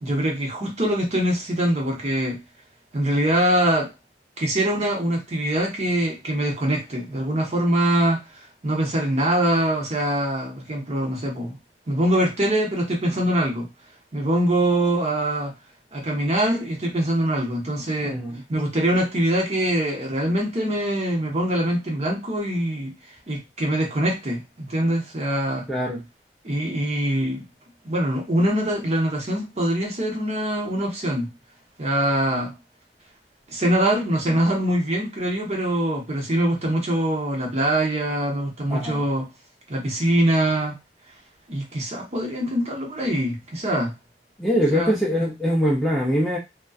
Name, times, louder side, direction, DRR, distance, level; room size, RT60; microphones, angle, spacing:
voice 1, 0.0-2.4 2.9-3.9 4.4-8.2 8.6-11.6 11.9-13.7 14.1-15.5 15.9-18.2 18.5-22.9 23.3-25.7 26.4-27.5 27.8-31.3 31.8-32.5 33.5-39.3 39.7-40.8 41.5-43.9 44.7-45.0, right 1 dB, 40° right, 0.8 m, -23 dB
voice 2, 18.0-18.4 25.7-26.0 38.7-39.0 44.4-46.4, equal, ahead, 0.4 m, -23 dB
2.5 x 2.2 x 2.3 m
head